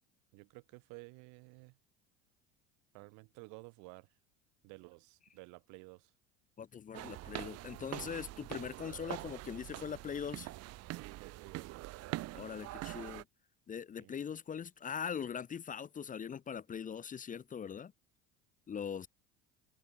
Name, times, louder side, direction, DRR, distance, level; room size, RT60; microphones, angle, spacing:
voice 1, 0.3-1.8 2.9-4.1 4.6-6.1 10.9-11.8 13.9-14.1, right 30 dB, 70° right, 1.1 m, -53 dB
voice 2, 6.6-10.5 12.3-13.2 13.7-17.9 18.7-19.1, left 7 dB, 25° left, 0.7 m, -41 dB
sound 1, 6.9-13.2, right 18 dB, 55° right, 0.8 m, -44 dB
supercardioid pair, 90°, 31 cm